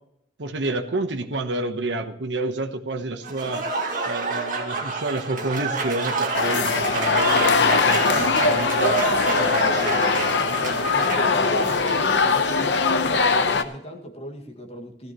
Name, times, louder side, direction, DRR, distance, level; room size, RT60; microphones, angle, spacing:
voice 1, 0.4-3.7 4.0-9.0 9.4-10.3, right 2 dB, 85° right, 6 dB, 1.1 m, -29 dB
Applause / Crowd, 3.2-12.1, right 3 dB, 50° right, 2.0 m, -28 dB
sound 1, 6.3-13.6, left 4 dB, 75° left, 0.9 m, -21 dB
voice 2, 9.6-10.2 10.9-15.1, left 1 dB, 35° left, 3 dB, 1.9 m, -36 dB
17.0 x 13.5 x 3.0 m, 0.75 s
head